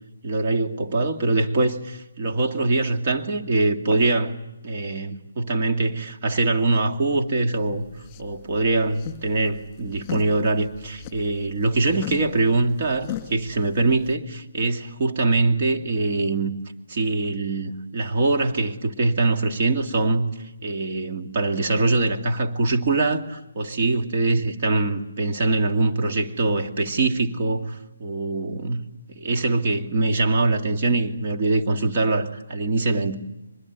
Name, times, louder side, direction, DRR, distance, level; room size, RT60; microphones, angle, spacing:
voice 1, 0.2-4.3 4.6-7.9 8.2-16.5 16.9-20.3 20.6-33.1, right 3 dB, 40° right, 2.5 m, -23 dB
sound 1, 7.5-14.1, left 11 dB, 20° left, 2.6 m, -39 dB
24.0 x 21.0 x 9.6 m
hypercardioid pair, 160°, 0 cm